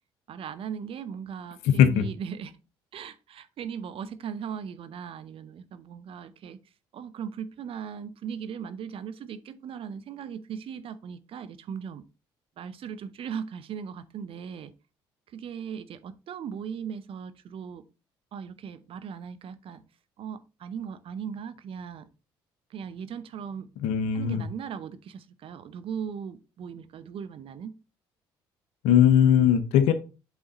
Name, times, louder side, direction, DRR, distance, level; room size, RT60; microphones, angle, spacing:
voice 1, 0.3-2.5 2.9-6.6 6.9-12.0 12.6-14.7 15.3-17.8 18.3-19.8 20.2-22.1 22.7-23.7 24.1-27.7, right 7 dB, 55° right, 0.7 m, -38 dB
voice 2, 1.6-2.0 23.8-24.5 28.8-29.9, left 9 dB, 80° left, 0.8 m, -20 dB
8.2 x 3.6 x 4.0 m
supercardioid pair, 70°, 11 cm